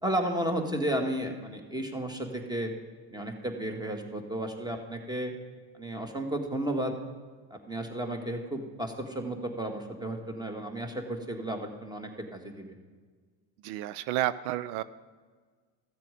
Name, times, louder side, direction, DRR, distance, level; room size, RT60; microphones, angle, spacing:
voice 1, 0.0-2.7 3.1-5.3 5.7-6.9 7.5-12.7, right 1 dB, 10° right, 4 dB, 1.6 m, -33 dB
voice 2, 13.6-14.8, right 14 dB, 85° right, 16 dB, 0.6 m, -31 dB
14.0 x 7.5 x 5.1 m, 1.5 s
supercardioid pair, 100°, 48 cm